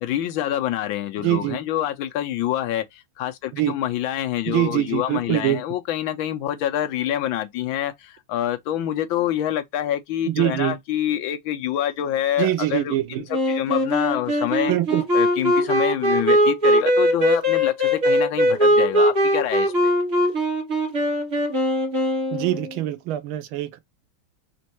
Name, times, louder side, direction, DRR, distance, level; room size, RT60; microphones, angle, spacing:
voice 1, 0.0-12.9 13.5-14.7 15.1-19.9, left 12 dB, 75° left, 1.4 m, -26 dB
voice 2, 1.2-1.6 3.5-3.8 4.5-5.6 10.3-10.8 12.4-13.3 14.7-15.0 22.3-23.8, right 14 dB, 90° right, 1.5 m, -24 dB
Wind instrument woodwind instrument, 13.3-22.8, equal, 40° right, 1.8 m, -20 dB
4.3 x 3.1 x 2.9 m
omnidirectional pair, 2.2 m